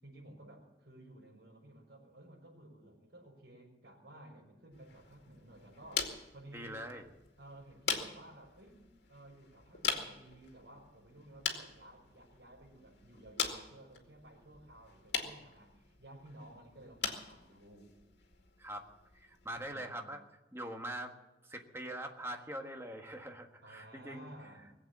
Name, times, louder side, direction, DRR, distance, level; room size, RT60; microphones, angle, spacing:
voice 1, 0.0-6.8 7.4-8.8 9.1-17.9 19.6-20.1 23.6-24.7, right 1 dB, 80° right, -3 dB, 5.7 m, -55 dB
sound 1, 4.7-19.8, left 6 dB, 75° left, 2.2 m, -42 dB
voice 2, 6.5-7.1 18.6-18.8 19.1-20.2 20.5-21.1 21.4-24.3, right 1 dB, 15° right, 4 dB, 1.5 m, -43 dB
20.5 x 8.1 x 8.6 m, 1.0 s
head